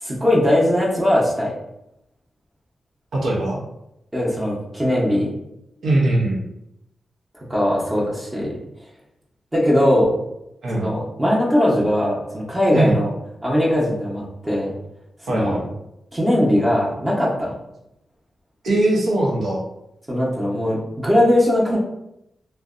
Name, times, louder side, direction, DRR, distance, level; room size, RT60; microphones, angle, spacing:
voice 1, 0.0-1.5 4.1-5.3 7.5-8.5 9.5-10.1 10.7-13.1 13.4-14.7 15.3-15.6 16.1-17.5 20.1-21.8, left 1 dB, 20° right, -5 dB, 0.7 m, -20 dB
voice 2, 3.1-3.6 5.8-6.4 10.6-10.9 12.7-13.0 15.3-15.6 18.6-19.6, right 1 dB, 80° right, -3 dB, 0.7 m, -20 dB
2.6 x 2.1 x 2.4 m, 0.83 s
cardioid pair, 65°, 0 cm